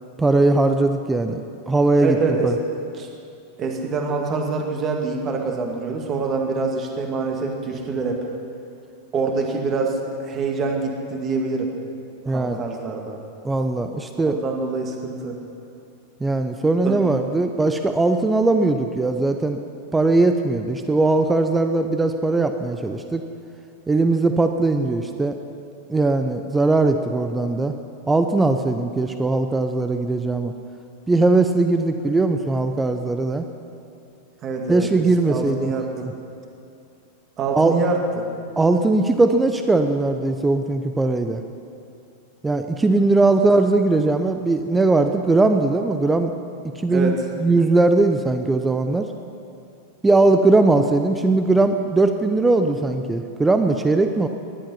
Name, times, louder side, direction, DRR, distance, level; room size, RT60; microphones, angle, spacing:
voice 1, 0.2-1.4 1.7-2.2 2.4-2.5 12.3-12.6 13.4-14.4 16.2-19.6 19.9-23.2 23.9-25.3 25.9-27.7 28.1-30.5 31.1-33.4 34.7-36.1 37.5-37.7 38.6-41.4 42.4-46.3 46.8-47.1 47.4-49.1 50.0-54.3, right 2 dB, 10° right, 7 dB, 0.7 m, -19 dB
voice 2, 2.0-2.5 3.0-3.1 3.6-8.3 9.1-11.7 12.2-13.2 14.2-15.4 16.8-17.0 34.4-34.9 35.2-36.1 37.4-38.3 46.9-47.2, right 4 dB, 30° right, 2 dB, 2.2 m, -25 dB
19.5 x 11.5 x 5.7 m, 2.6 s
figure-of-eight pair, 90°, 0 cm